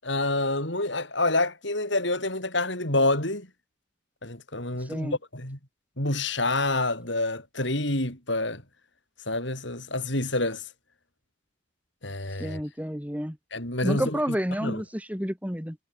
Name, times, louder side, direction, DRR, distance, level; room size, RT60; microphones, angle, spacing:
voice 1, 0.0-3.5 4.2-5.6 6.0-8.6 9.3-10.6 12.0-12.6 13.5-14.8, left 2 dB, 60° left, 7.5 m, -28 dB
voice 2, 12.4-13.4 13.8-15.8, equal, 5° right, 5.5 m, -30 dB
head